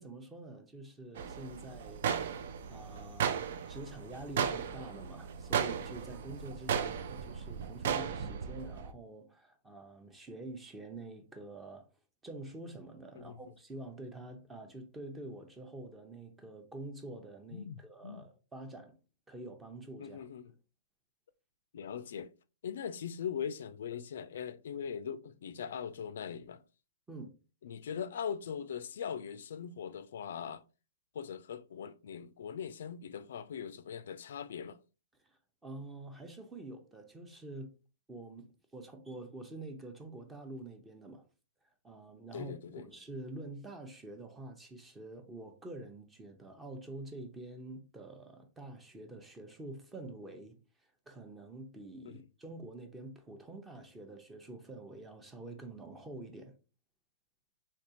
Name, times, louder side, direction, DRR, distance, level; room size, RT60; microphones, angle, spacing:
voice 1, 0.0-2.1 2.7-3.4 3.7-11.9 12.2-19.0 19.3-20.2 27.1-27.3 35.2-37.7 38.1-41.3 41.8-50.6 51.1-56.5, right 2 dB, 10° right, 0.7 m, -47 dB
sound 1, 1.2-8.9, right 7 dB, 65° right, 0.4 m, -36 dB
voice 2, 17.5-18.2 20.0-20.5 21.7-22.3 22.6-26.6 27.6-30.6 31.1-34.8 42.3-42.9 52.1-52.2, left 7 dB, 75° left, 0.3 m, -41 dB
3.5 x 2.7 x 2.8 m
hypercardioid pair, 135°, 0 cm